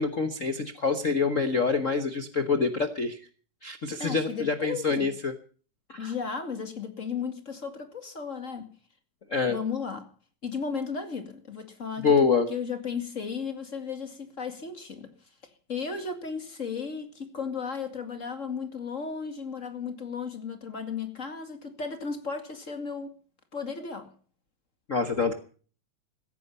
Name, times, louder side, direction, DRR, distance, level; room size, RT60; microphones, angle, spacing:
voice 1, 0.0-3.2 3.6-5.3 5.9-6.1 9.3-9.6 12.0-12.5 24.9-25.3, left 4 dB, 90° left, 0.7 m, -26 dB
voice 2, 4.0-5.1 6.0-8.7 9.5-10.1 10.4-15.1 15.7-23.1 23.5-24.1, left 5 dB, 30° left, 2.1 m, -35 dB
17.0 x 15.0 x 5.5 m
omnidirectional pair, 3.4 m